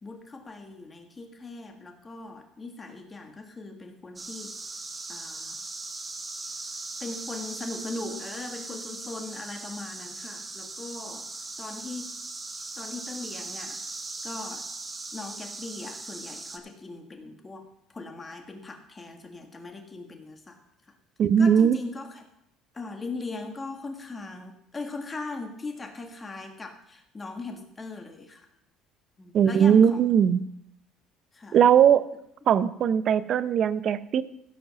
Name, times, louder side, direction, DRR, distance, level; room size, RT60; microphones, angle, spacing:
voice 1, 0.0-4.6 5.1-5.6 7.0-11.3 11.6-12.2 12.8-13.8 14.2-14.7 15.1-17.7 17.9-20.6 20.9-21.0 21.4-22.2 22.7-28.5 29.2-30.0 31.3-31.6, left 3 dB, 20° left, 3 dB, 1.7 m, -39 dB
sound 1, 4.2-16.6, right 3 dB, 20° right, 1.1 m, -39 dB
voice 2, 21.2-21.8 29.3-30.4 31.5-32.0 32.5-34.2, right 8 dB, 50° right, 15 dB, 0.6 m, -19 dB
15.5 x 5.3 x 5.9 m, 0.79 s
cardioid pair, 120°, 0 cm